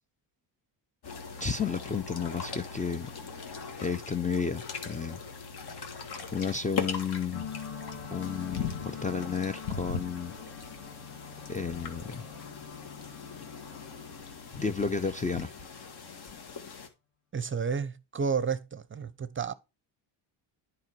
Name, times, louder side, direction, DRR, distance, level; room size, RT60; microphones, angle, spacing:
sound 1, 1.0-16.9, left 5 dB, 55° left, 1.9 m, -40 dB
voice 1, 1.4-3.1 3.8-5.2 6.3-7.5 8.1-10.3 11.5-12.2 14.6-15.5, left 5 dB, 15° left, 0.5 m, -32 dB
sound 2, 7.3-15.7, left 7 dB, 35° left, 2.5 m, -45 dB
voice 2, 17.3-19.5, right 6 dB, 25° right, 0.6 m, -31 dB
9.5 x 5.0 x 4.5 m
cardioid pair, 90°, 47 cm